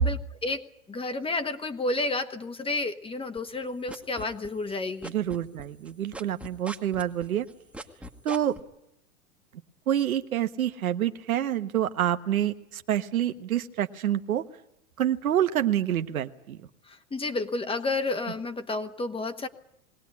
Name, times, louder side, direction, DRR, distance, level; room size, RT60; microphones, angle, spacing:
voice 1, 0.0-5.1 16.9-19.5, left 2 dB, 15° left, 9 dB, 1.4 m, -31 dB
sound 1, 3.4-4.7 5.0-8.6, right 1 dB, 5° right, 1.6 m, -40 dB
voice 2, 5.0-7.5 8.2-8.5 9.9-14.4 15.0-16.6, right 11 dB, 90° right, 8 dB, 1.4 m, -27 dB
21.5 x 17.0 x 9.7 m, 0.79 s
hypercardioid pair, 120°, 41 cm